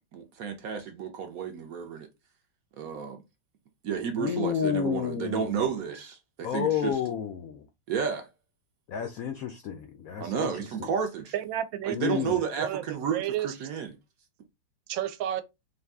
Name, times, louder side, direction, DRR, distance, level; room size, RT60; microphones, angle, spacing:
voice 1, 0.1-2.1 2.8-3.2 3.8-7.0 7.9-8.3 10.2-11.3 11.8-13.9, right 7 dB, 65° right, 0.9 m, -32 dB
voice 2, 4.2-5.6 6.4-7.7 8.9-10.5 11.9-12.4, left 8 dB, 80° left, 0.7 m, -30 dB
voice 3, 11.3-13.5 14.9-15.4, right 11 dB, 90° right, 1.3 m, -32 dB
3.9 x 2.7 x 3.4 m
omnidirectional pair, 2.1 m